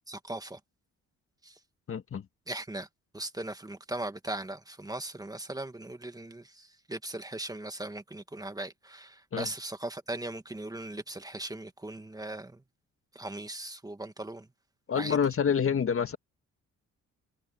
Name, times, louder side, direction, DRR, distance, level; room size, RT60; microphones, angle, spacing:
voice 1, 0.1-0.6 1.4-1.6 2.5-2.9 3.1-12.6 13.1-14.5 15.0-15.2, right 2 dB, 10° right, 1.9 m, -39 dB
voice 2, 1.9-2.3 9.3-9.5 14.9-16.2, left 7 dB, 45° left, 1.9 m, -27 dB
cardioid pair, 90°, 30 cm